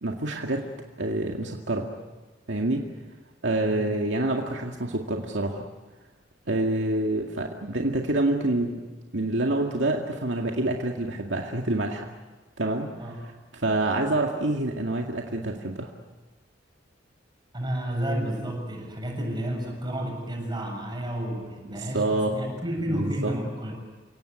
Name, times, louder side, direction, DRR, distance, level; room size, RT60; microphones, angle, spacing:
voice 1, 0.0-0.7 1.0-1.9 2.5-2.9 3.4-5.6 6.5-8.8 9.1-12.1 12.6-13.2 13.5-15.9 21.7-22.4 22.9-23.3, right 2 dB, 75° right, 1 dB, 2.2 m, -27 dB
voice 2, 17.5-23.8, right 1 dB, 25° right, 1 dB, 7.4 m, -31 dB
30.0 x 18.0 x 9.5 m, 1.2 s
head